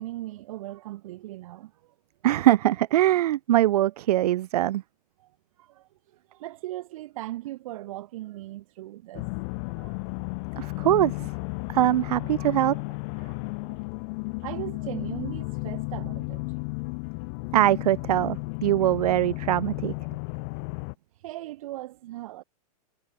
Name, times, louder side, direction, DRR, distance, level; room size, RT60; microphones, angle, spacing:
voice 1, 0.0-1.9 5.2-5.3 5.6-9.3 9.8-10.0 10.6-10.7 12.4-12.5 13.2-13.8 14.4-16.4 21.2-22.4, right 16 dB, 60° right, 4.6 m, -39 dB
voice 2, 2.2-4.8 10.6-11.3 11.7-12.8 17.5-19.9, right 13 dB, 75° right, 0.5 m, -22 dB
sound 1, 9.1-20.9, left 33 dB, 45° left, 5.0 m, -33 dB
hypercardioid pair, 145°, 20 cm